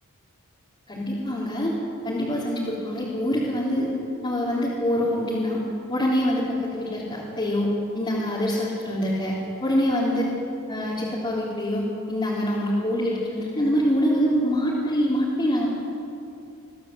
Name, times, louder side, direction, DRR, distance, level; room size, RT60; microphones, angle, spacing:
voice 1, 0.9-1.8 2.0-3.9 4.2-5.6 5.9-6.4 6.7-10.2 10.7-15.7, equal, 25° left, -8 dB, 3.4 m, -25 dB
22.5 x 14.0 x 8.1 m, 2.7 s
head